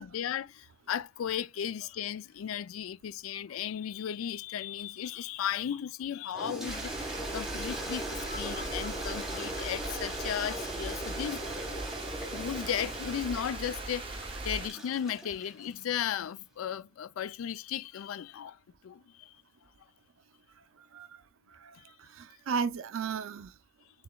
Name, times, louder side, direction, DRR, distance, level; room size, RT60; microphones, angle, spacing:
voice 1, 0.0-7.1 7.3-11.5 12.3-19.3 21.7-21.8, left 9 dB, 80° left, 0.3 m, -35 dB
Toilet flush, 6.3-15.7, right 1 dB, ahead, 1.0 m, -39 dB
sound 1, 6.6-14.7, right 2 dB, 25° right, 0.6 m, -40 dB
sound 2, 8.2-12.6 13.5-13.6, left 3 dB, 30° left, 0.8 m, -51 dB
voice 2, 21.5-23.5, right 6 dB, 75° right, 0.4 m, -35 dB
6.7 x 2.9 x 2.2 m
head